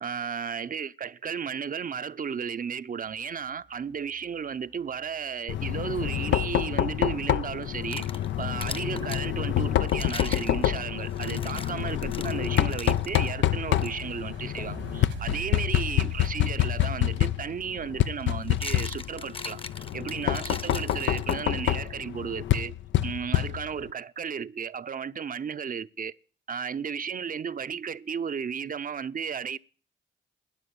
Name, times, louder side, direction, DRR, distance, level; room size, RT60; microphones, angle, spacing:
voice 1, 0.0-19.6 19.9-22.8 23.0-26.1 26.5-29.6, right 7 dB, 45° right, 0.7 m, -34 dB
sound 1, 3.0-20.9, right 9 dB, 80° right, 1.8 m, -49 dB
Knock, 5.5-23.9, left 12 dB, 75° left, 0.6 m, -27 dB
sound 2, 7.6-9.3 9.8-13.3 13.8-13.9 14.6-14.8 16.9-17.0 18.2-21.7, left 3 dB, 30° left, 0.9 m, -41 dB
12.5 x 9.0 x 8.6 m
supercardioid pair, 60°, 20 cm